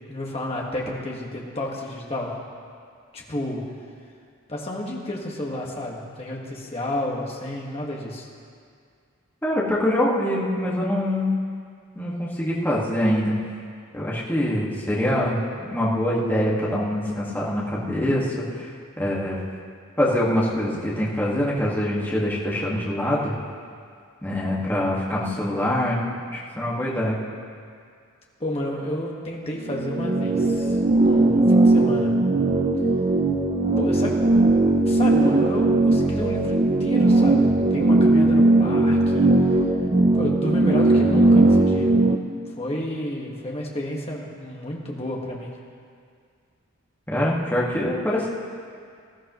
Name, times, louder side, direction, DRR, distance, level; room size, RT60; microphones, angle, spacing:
voice 1, 0.1-2.4 3.1-3.7 4.5-8.3 28.4-32.3 33.8-34.2 34.8-39.3 40.1-42.1 42.6-45.6, left 1 dB, 25° left, -2 dB, 1.5 m, -31 dB
voice 2, 9.4-11.3 12.0-13.3 13.9-18.7 19.0-19.4 20.0-23.3 24.2-26.0 26.3-27.2 32.7-32.8 47.1-48.3, left 1 dB, 10° left, -6 dB, 1.7 m, -24 dB
sound 1, 29.6-42.2, right 2 dB, 25° right, 0.5 m, -18 dB
19.5 x 13.0 x 3.1 m, 2.2 s
head